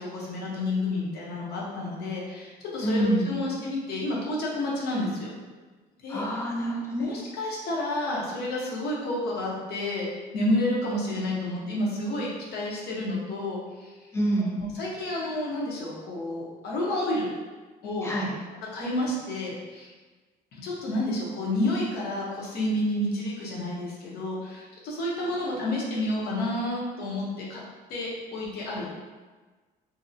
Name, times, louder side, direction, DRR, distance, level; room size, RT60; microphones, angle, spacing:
voice 1, 0.0-5.3 6.0-6.3 7.0-13.9 14.6-17.3 17.8-18.1 18.7-19.9 20.5-27.6 27.9-29.0, left 1 dB, 75° left, -4 dB, 0.8 m, -30 dB
voice 2, 2.8-3.4 6.1-7.2 14.1-14.5 18.0-18.3, right 1 dB, 15° left, -3 dB, 0.6 m, -26 dB
2.6 x 2.1 x 2.6 m, 1.3 s
cardioid pair, 110°, 17 cm